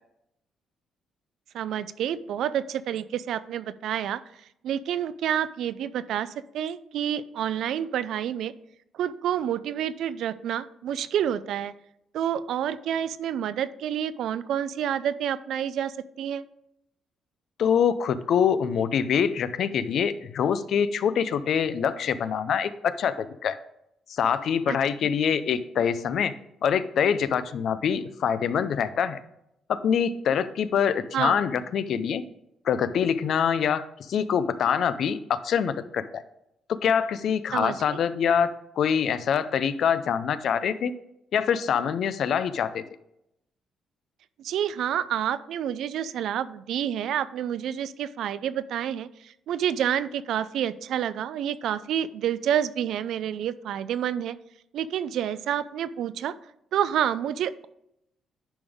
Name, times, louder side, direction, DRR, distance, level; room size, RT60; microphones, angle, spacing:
voice 1, 1.5-4.2 4.6-8.5 8.9-11.7 12.1-16.4 24.7-24.8 25.0-25.1 31.1-31.4 37.5-37.8 44.4-54.4 54.7-56.3 56.7-57.7, right 10 dB, 75° right, 15 dB, 0.4 m, -28 dB
voice 2, 17.6-23.6 24.1-26.3 26.6-29.2 29.7-32.2 32.6-36.2 36.8-40.9 41.3-42.8, left 7 dB, 65° left, 13 dB, 0.5 m, -25 dB
10.0 x 5.3 x 3.6 m, 0.80 s
cardioid pair, 90°, 0 cm